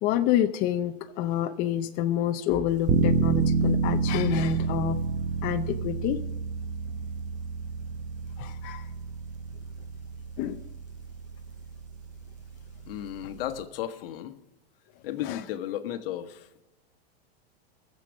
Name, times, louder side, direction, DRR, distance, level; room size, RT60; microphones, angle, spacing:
voice 1, 0.0-5.0 5.4-6.2 8.4-8.8 10.4-10.6 15.3-15.4, left 12 dB, 30° left, 0.5 m, -27 dB
sound 1, 2.9-13.6, right 5 dB, 25° right, 0.7 m, -30 dB
voice 2, 12.9-14.4 15.0-16.6, left 12 dB, 65° left, 1.2 m, -34 dB
18.5 x 7.6 x 6.2 m
supercardioid pair, 150°, 32 cm